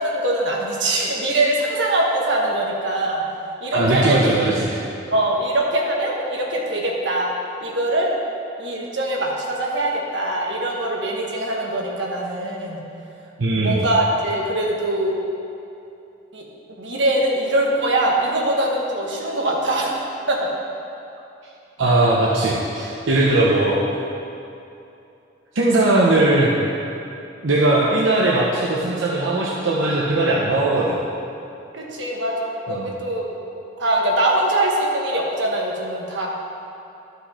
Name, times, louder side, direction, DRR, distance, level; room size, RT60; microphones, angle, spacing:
voice 1, 0.0-3.2 3.6-4.3 5.1-7.3 7.6-8.1 8.6-12.8 13.5-15.2 16.3-16.4 16.8-20.5 31.7-33.3 33.8-36.3, right 1 dB, 75° right, -2 dB, 1.4 m, -22 dB
voice 2, 3.7-4.8 13.4-13.8 21.8-23.8 25.5-26.6 27.4-31.0 32.7-32.9, right 2 dB, 90° right, -5 dB, 0.9 m, -19 dB
12.0 x 5.4 x 4.3 m, 2.7 s
head